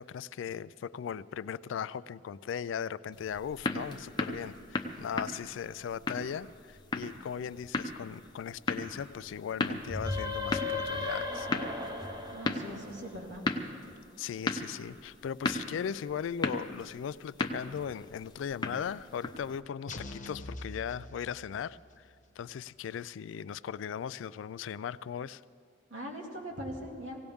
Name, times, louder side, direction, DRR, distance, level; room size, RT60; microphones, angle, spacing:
voice 1, 0.0-11.6 14.2-22.1 22.4-25.4, left 8 dB, 75° left, 18 dB, 0.3 m, -38 dB
sound 1, 3.1-19.6, left 2 dB, 25° left, 0.7 m, -37 dB
sound 2, 9.8-13.5, left 3 dB, 20° right, 1.0 m, -36 dB
voice 2, 12.3-13.4 25.9-27.2, equal, 80° right, -1 dB, 2.3 m, -41 dB
sound 3, 19.9-21.8, left 2 dB, 40° left, 1.0 m, -43 dB
18.5 x 17.0 x 3.6 m, 2.2 s
head